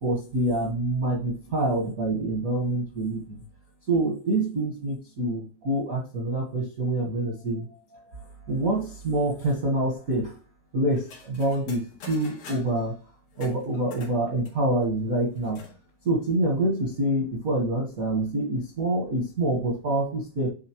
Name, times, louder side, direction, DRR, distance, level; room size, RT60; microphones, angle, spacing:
voice 1, 0.0-3.4 3.9-7.7 8.5-10.4 10.7-13.0 13.4-15.6 16.0-20.5, right 1 dB, 50° right, -2 dB, 1.0 m, -26 dB
sound 1, 10.9-12.9 13.3-15.8 16.1-16.2 16.4-17.1, left 5 dB, 90° left, 3.4 m, -46 dB
9.6 x 4.0 x 2.9 m, 0.38 s
omnidirectional pair, 3.4 m